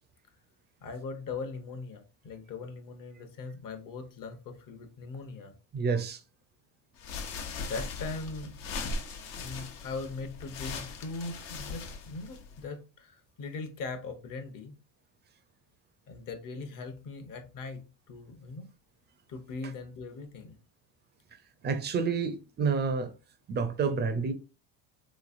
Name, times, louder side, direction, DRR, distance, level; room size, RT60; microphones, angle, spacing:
voice 1, 0.8-5.5 7.5-8.6 9.3-14.7 16.1-18.7 19.3-20.6, left 3 dB, 45° left, 0.9 m, -40 dB
voice 2, 5.7-6.2 21.6-23.1 23.5-24.3, right 5 dB, 25° right, 0.4 m, -29 dB
sound 1, 7.0-12.7, left 4 dB, 70° left, 1.0 m, -39 dB
3.4 x 3.1 x 2.5 m
cardioid pair, 120°, 45 cm